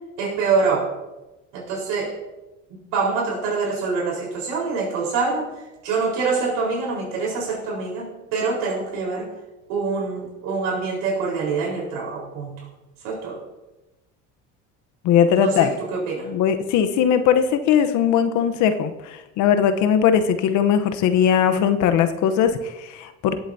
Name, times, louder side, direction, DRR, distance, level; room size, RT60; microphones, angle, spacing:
voice 1, 0.2-0.9 1.5-2.2 2.9-9.3 9.7-12.6 13.0-13.4 15.4-16.3, right 4 dB, 80° right, -3 dB, 4.3 m, -25 dB
voice 2, 15.0-15.7 16.3-23.4, left 8 dB, 65° left, 9 dB, 0.9 m, -19 dB
18.5 x 8.0 x 2.7 m, 1.0 s
supercardioid pair, 90°, 31 cm